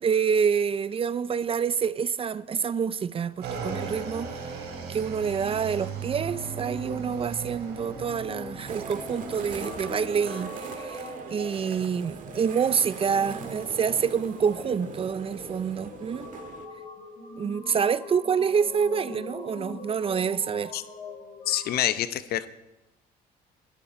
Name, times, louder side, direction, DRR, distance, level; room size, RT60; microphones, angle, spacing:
voice 1, 0.0-4.5 4.9-16.3 17.4-20.7, right 6 dB, 35° right, 0.5 m, -27 dB
Motorcycle / Engine, 3.4-10.0, right 6 dB, 75° right, 3.9 m, -37 dB
sound 1, 6.1-21.7, left 3 dB, 50° left, 7.6 m, -43 dB
sound 2, 8.7-16.7, right 6 dB, 50° right, 1.8 m, -41 dB
voice 2, 21.5-22.5, left 12 dB, 65° left, 0.9 m, -26 dB
21.5 x 13.5 x 4.4 m
cardioid pair, 110°, 17 cm